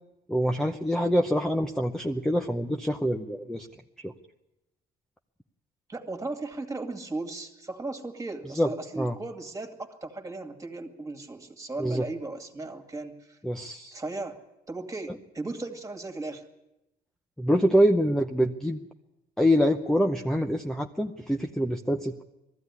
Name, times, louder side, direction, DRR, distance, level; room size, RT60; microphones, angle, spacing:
voice 1, 0.3-3.7 4.0-4.1 8.5-8.7 9.0-9.2 11.8-12.0 13.4-13.9 17.4-18.8 19.4-22.2, equal, 5° left, 3 dB, 0.8 m, -25 dB
voice 2, 5.9-13.4 13.9-14.3 14.7-16.4, right 2 dB, 20° right, 5 dB, 2.3 m, -36 dB
20.0 x 14.5 x 9.7 m, 0.94 s
cardioid pair, 110°, 17 cm